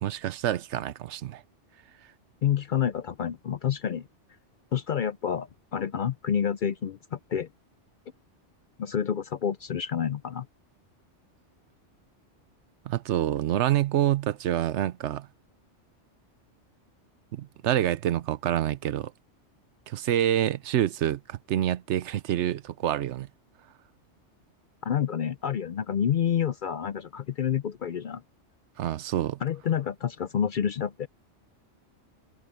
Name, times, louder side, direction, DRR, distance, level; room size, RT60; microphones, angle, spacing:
voice 1, 0.0-1.4 12.9-15.3 17.3-19.1 19.9-23.3 28.8-29.4, right 12 dB, 75° right, 0.9 m, -27 dB
voice 2, 2.4-4.1 4.7-7.5 8.8-10.5 24.8-28.2 29.4-31.1, left 8 dB, 60° left, 0.6 m, -28 dB
omnidirectional pair, 1.2 m